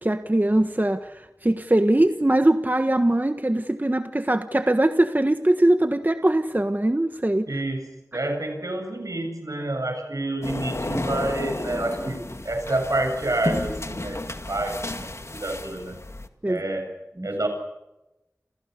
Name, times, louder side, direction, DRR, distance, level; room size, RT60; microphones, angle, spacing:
voice 1, 0.0-7.5 16.4-16.6 17.2-17.3, right 1 dB, 30° right, 8 dB, 1.4 m, -21 dB
voice 2, 7.5-14.2 14.5-16.0 16.5-16.9 17.2-17.5, right 2 dB, 75° right, 5 dB, 7.9 m, -28 dB
sound 1, 10.4-16.3, left 2 dB, 55° left, 2.1 m, -32 dB
30.0 x 28.0 x 6.8 m, 0.97 s
wide cardioid pair, 50°, 6 cm